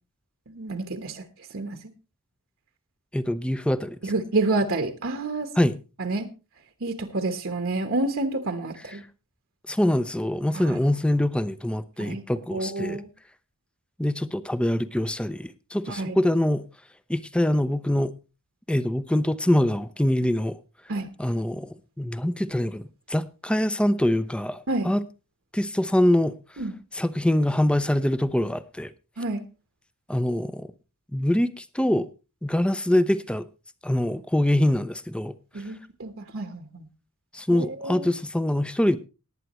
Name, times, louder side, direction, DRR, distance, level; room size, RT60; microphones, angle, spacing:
voice 1, 0.5-1.2 1.5-1.8 4.0-5.5 6.0-6.3 6.8-9.0 10.5-10.8 12.0-12.2 12.5-13.1 15.9-16.2 20.9-21.1 24.7-24.9 26.6-26.7 29.2-29.4 35.5-36.9 37.5-38.1, right 2 dB, 60° right, 1.1 m, -29 dB
voice 2, 3.1-4.0 5.6-5.8 9.7-13.0 14.0-16.6 17.1-18.1 18.7-20.6 21.2-22.8 23.1-25.0 25.5-26.4 26.9-28.9 30.1-30.7 31.1-32.1 32.4-33.5 33.8-35.3 37.3-39.0, left 1 dB, 5° left, 0.5 m, -24 dB
19.0 x 9.1 x 3.0 m
head